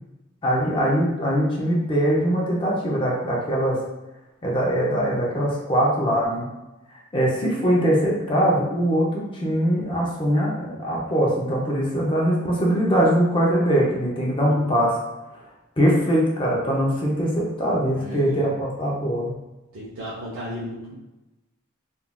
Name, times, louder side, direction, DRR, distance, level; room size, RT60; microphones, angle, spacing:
voice 1, 0.4-3.8 4.4-6.5 7.1-15.0 15.8-19.3, equal, 25° left, -4 dB, 0.6 m, -22 dB
voice 2, 17.9-18.5 19.7-21.0, equal, 75° right, -8 dB, 0.6 m, -35 dB
3.6 x 2.4 x 2.2 m, 1.0 s
head